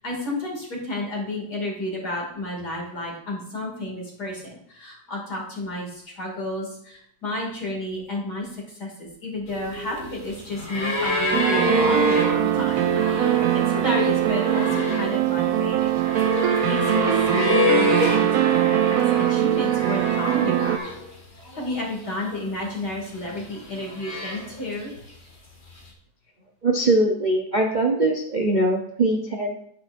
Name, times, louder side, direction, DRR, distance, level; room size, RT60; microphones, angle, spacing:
voice 1, 0.0-20.8 21.5-24.9, left 1 dB, 55° left, -2 dB, 3.1 m, -32 dB
sound 1, 9.5-21.2 21.5-22.4 23.1-24.8 25.8-25.9, left 2 dB, 35° left, 2.1 m, -28 dB
sound 2, 11.3-20.8, right 12 dB, 85° right, 0.7 m, -22 dB
voice 2, 26.6-29.6, right 2 dB, 60° right, 0 dB, 0.4 m, -22 dB
17.5 x 6.0 x 2.6 m, 0.69 s
omnidirectional pair, 2.1 m